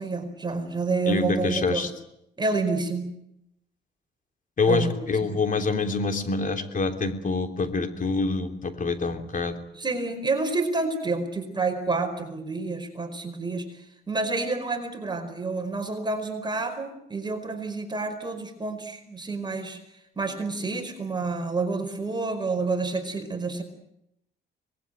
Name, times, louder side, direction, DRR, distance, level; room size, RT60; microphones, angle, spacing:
voice 1, 0.0-1.9 2.4-3.1 4.6-4.9 5.2-5.3 9.7-13.8 14.1-19.8 20.2-23.6, right 3 dB, 20° right, 5 dB, 4.9 m, -29 dB
voice 2, 1.0-1.9 4.6-9.6, left 3 dB, 40° left, 6 dB, 3.4 m, -26 dB
25.0 x 20.5 x 9.3 m, 0.81 s
cardioid pair, 90°, 20 cm